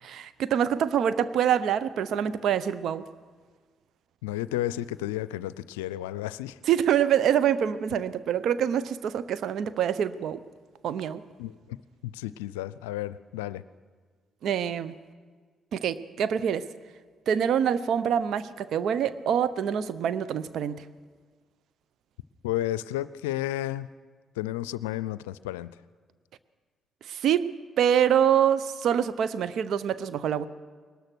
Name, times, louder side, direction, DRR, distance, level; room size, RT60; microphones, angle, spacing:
voice 1, 0.0-3.1 6.7-10.4 10.8-11.2 14.4-14.9 15.7-16.7 17.3-20.8 27.1-27.5 27.8-30.5, right 9 dB, 65° right, 15 dB, 0.9 m, -25 dB
voice 2, 4.2-6.6 11.4-11.8 12.0-13.6 22.4-23.9 24.4-25.7, left 14 dB, 85° left, 17 dB, 0.5 m, -32 dB
21.5 x 19.5 x 6.2 m, 1.5 s
hypercardioid pair, 45°, 0 cm